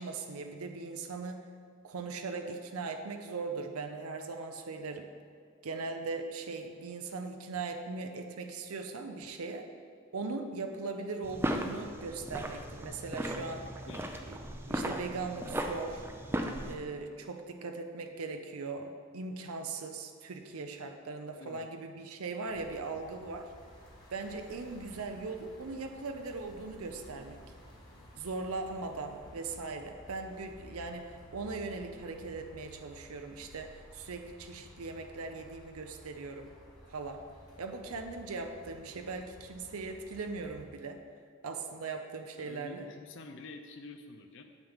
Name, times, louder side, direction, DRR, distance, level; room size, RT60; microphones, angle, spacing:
voice 1, 0.0-1.4 1.8-5.1 5.6-9.6 10.1-13.7 14.3-14.4 14.7-16.1 16.6-23.5 24.1-27.4 28.2-36.5 36.9-37.2 37.6-41.0 41.4-42.9, right 3 dB, 85° right, 5 dB, 0.6 m, -39 dB
sound 1, 11.2-16.7, right 1 dB, 10° right, 0.4 m, -36 dB
voice 2, 13.6-14.1 21.4-21.7 42.4-44.4, left 3 dB, 60° left, 6 dB, 0.5 m, -48 dB
sound 2, 22.4-40.7, equal, 20° left, 1.4 m, -54 dB
9.0 x 7.2 x 3.5 m, 2.2 s
head